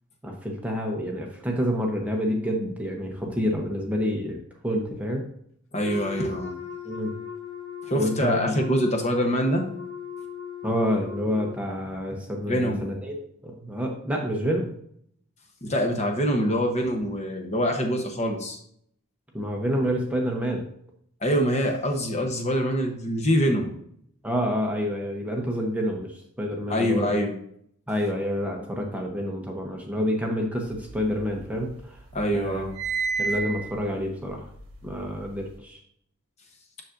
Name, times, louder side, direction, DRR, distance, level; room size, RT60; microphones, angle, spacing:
voice 1, 0.2-4.4 4.6-5.2 6.8-7.1 7.9-8.6 10.6-14.7 19.3-20.6 24.2-27.2 27.9-32.0 32.3-32.7 33.2-34.5 34.8-35.8, equal, 5° right, 0 dB, 0.7 m, -28 dB
voice 2, 5.7-6.5 7.8-9.6 12.5-12.9 15.6-18.6 21.2-23.7 26.7-27.3 32.1-32.7, equal, 30° left, 2 dB, 0.8 m, -24 dB
Wind instrument woodwind instrument, 5.8-11.6, left 8 dB, 60° left, 0.6 m, -38 dB
sound 1, 30.7-31.8 32.1-35.5, right 5 dB, 65° right, 1.2 m, -32 dB
7.0 x 6.3 x 2.5 m, 0.68 s
head